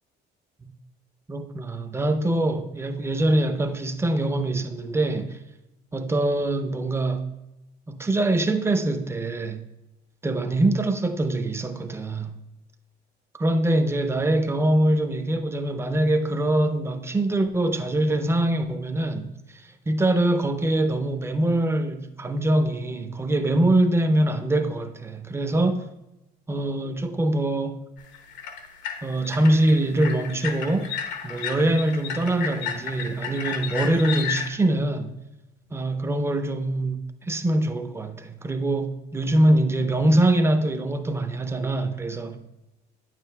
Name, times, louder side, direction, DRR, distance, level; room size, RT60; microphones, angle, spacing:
voice 1, 1.3-5.4 5.9-7.3 7.9-9.6 10.2-12.4 13.3-25.9 26.5-27.8 29.0-30.9 31.2-35.1 35.7-42.4, right 1 dB, 15° right, 0.6 m, -23 dB
sound 1, 28.0-34.5, left 7 dB, 75° left, 0.9 m, -33 dB
8.8 x 7.5 x 2.2 m
cardioid pair, 90°, 19 cm